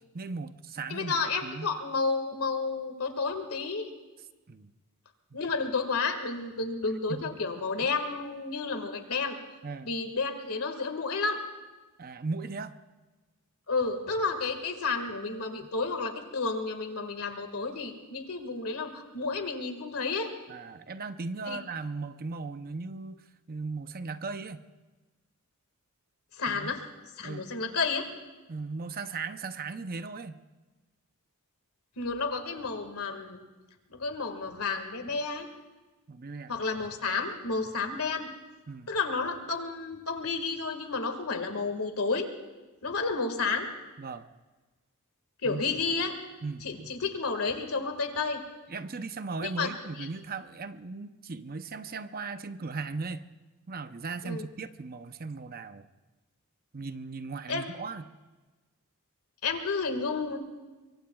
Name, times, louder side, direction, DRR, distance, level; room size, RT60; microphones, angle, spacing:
voice 1, 0.0-1.7 4.5-4.7 5.3-5.4 7.1-7.4 9.6-9.9 12.0-12.8 20.5-24.7 26.5-26.7 27.2-27.5 28.5-30.4 36.1-36.5 38.7-38.9 44.0-44.3 45.4-45.6 46.4-46.9 48.7-53.3 53.7-55.9 56.7-58.1, right 4 dB, 45° right, 10 dB, 0.7 m, -37 dB
voice 2, 0.9-3.9 5.3-9.4 9.8-11.4 13.7-20.3 21.4-21.6 26.3-26.8 27.2-28.0 32.0-33.4 33.9-35.5 36.5-38.3 38.9-42.3 42.8-43.7 45.4-46.1 46.6-48.4 49.4-49.7 50.0-50.1 54.2-54.5 57.5-57.7 59.4-60.4, left 4 dB, 85° left, 6 dB, 1.9 m, -31 dB
24.5 x 23.5 x 2.4 m, 1.2 s
head